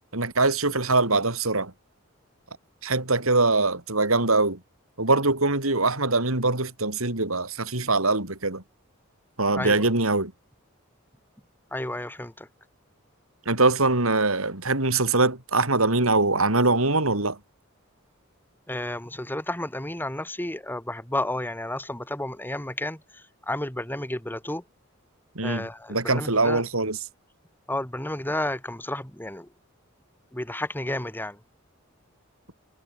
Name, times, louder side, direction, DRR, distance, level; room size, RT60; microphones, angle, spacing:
voice 1, 0.1-1.7 2.8-4.6 5.0-8.6 9.4-10.3 13.5-17.4 25.3-27.0, right 3 dB, 75° right, 4.7 m, -23 dB
voice 2, 9.6-9.9 11.7-12.5 18.7-24.6 25.4-26.7 27.7-29.5 30.3-31.4, left 1 dB, 10° left, 2.5 m, -32 dB
head